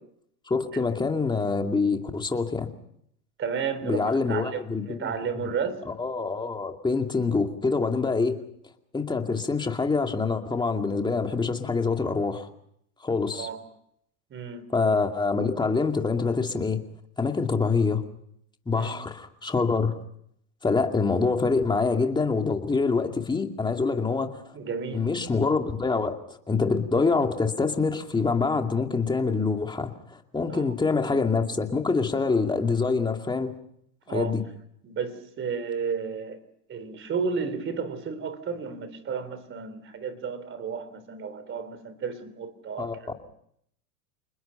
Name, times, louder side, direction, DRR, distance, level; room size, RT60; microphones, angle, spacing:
voice 1, 0.5-2.7 3.8-5.1 5.4-5.5 5.9-8.4 8.9-12.5 13.0-13.5 14.7-16.8 17.2-18.0 18.7-19.9 20.6-24.4 24.9-26.2 26.5-33.6 34.1-34.4 42.8-42.9, left 4 dB, 10° left, 4 dB, 2.4 m, -25 dB
voice 2, 3.4-5.8 13.3-13.6 14.3-14.7 18.7-18.9 24.5-25.1 30.5-30.6 34.1-34.3 34.8-36.4 36.7-43.2, right 6 dB, 25° right, 14 dB, 3.6 m, -32 dB
28.5 x 20.5 x 5.7 m, 0.72 s
hypercardioid pair, 120°, 45 cm